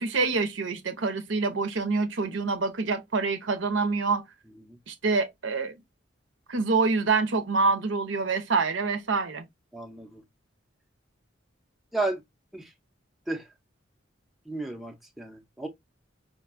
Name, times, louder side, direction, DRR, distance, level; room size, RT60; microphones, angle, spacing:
voice 1, 0.0-4.2 4.9-5.7 6.5-9.4, right 4 dB, 80° right, 0.7 m, -26 dB
voice 2, 4.5-4.8 9.7-10.2 11.9-12.2 12.5-12.7 13.3-13.5 14.5-15.7, right 2 dB, ahead, 0.5 m, -33 dB
5.1 x 2.2 x 2.5 m
head